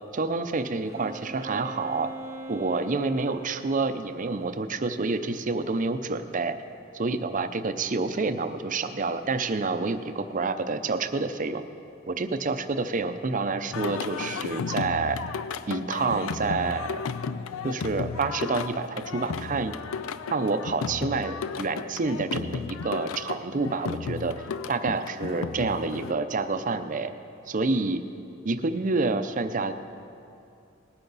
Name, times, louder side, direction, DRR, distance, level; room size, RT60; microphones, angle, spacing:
voice 1, 0.1-2.1 2.5-6.6 6.9-11.6 12.1-15.2 15.7-17.0 17.6-19.8 20.3-24.3 24.7-27.1 27.5-28.0 28.4-29.7, right 3 dB, 40° right, 9 dB, 0.6 m, -28 dB
Wind instrument woodwind instrument, 0.9-3.8, right 2 dB, 15° right, 0.8 m, -40 dB
Singing, 13.7-26.1, left 6 dB, 85° left, 0.4 m, -34 dB
19.5 x 10.0 x 4.0 m, 2.6 s
head